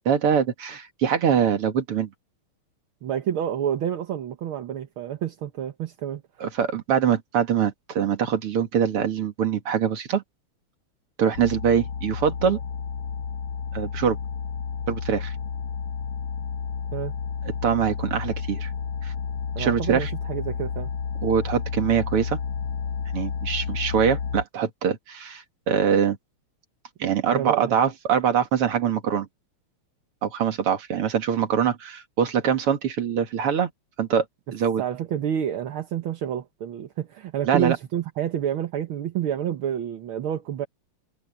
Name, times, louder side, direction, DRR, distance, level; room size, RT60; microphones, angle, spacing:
voice 1, 0.1-2.1 6.4-10.2 11.2-12.6 13.7-14.2 14.9-15.3 17.6-18.7 19.0-19.1 19.6-20.1 21.2-22.4 23.1-26.2 27.0-29.3 30.2-33.7 34.0-34.2 34.5-34.8 37.5-37.8, right 8 dB, 90° right, 2.9 m, -23 dB
voice 2, 3.0-6.2 16.9-17.1 19.6-20.9 27.2-27.8 34.8-40.7, right 10 dB, 70° right, 2.0 m, -29 dB
sound 1, 11.3-24.4, left 6 dB, 70° left, 1.9 m, -31 dB
omnidirectional pair, 2.4 m